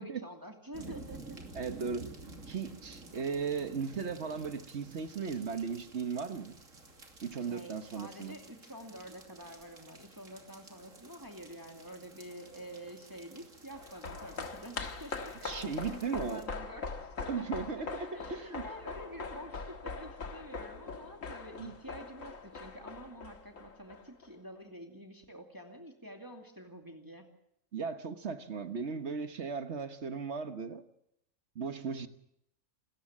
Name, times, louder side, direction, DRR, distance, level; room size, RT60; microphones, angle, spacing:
voice 1, 0.0-1.4 7.4-17.5 18.1-27.3, equal, 15° right, 2.5 m, -48 dB
sound 1, 0.7-16.4, right 3 dB, 80° right, 3.2 m, -52 dB
voice 2, 1.5-2.1 2.5-6.6 7.2-8.3 15.4-16.4 17.3-18.6 21.6-21.7 27.7-30.8 31.5-32.1, right 5 dB, 60° right, 1.5 m, -36 dB
sound 2, 13.7-24.3 24.6-24.7, left 4 dB, 80° left, 2.1 m, -42 dB
27.0 x 14.0 x 7.4 m
omnidirectional pair, 1.3 m